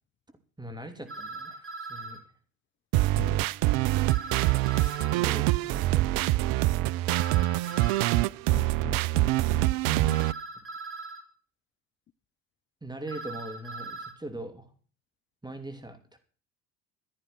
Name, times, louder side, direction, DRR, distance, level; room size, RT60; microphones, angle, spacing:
voice 1, 0.6-2.2 4.8-6.5 12.8-14.7 15.4-16.2, right 1 dB, 10° right, 2.9 m, -41 dB
sound 1, 1.1-2.2 4.1-5.2 7.1-8.2 10.1-11.2 13.1-14.1, right 3 dB, 30° right, 4.2 m, -40 dB
sound 2, 2.9-10.3, right 18 dB, 55° right, 0.6 m, -25 dB
voice 2, 3.2-3.5 8.5-10.3, left 10 dB, 30° left, 0.6 m, -41 dB
13.5 x 11.0 x 6.0 m
figure-of-eight pair, 60°, 42 cm